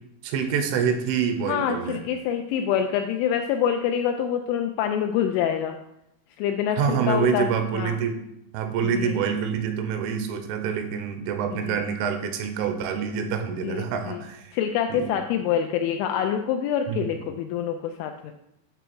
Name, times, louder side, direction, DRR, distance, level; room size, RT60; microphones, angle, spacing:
voice 1, 0.2-2.0 6.7-8.2 8.5-14.5 14.9-15.1 16.9-17.0, right 7 dB, 80° right, 6 dB, 3.2 m, -26 dB
voice 2, 1.5-5.8 6.4-8.0 8.8-9.2 11.5-11.8 13.5-14.2 14.5-18.3, left 8 dB, 85° left, 5 dB, 2.8 m, -26 dB
9.3 x 3.4 x 6.0 m, 0.82 s
omnidirectional pair, 5.7 m